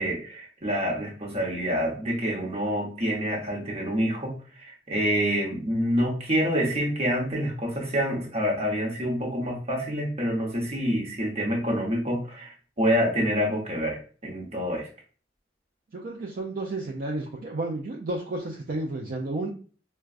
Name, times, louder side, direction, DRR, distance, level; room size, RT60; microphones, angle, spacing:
voice 1, 0.0-14.9, equal, 35° right, -1 dB, 0.9 m, -27 dB
voice 2, 15.9-19.5, right 2 dB, 50° right, 1 dB, 0.4 m, -32 dB
4.6 x 2.2 x 2.4 m, 0.39 s
head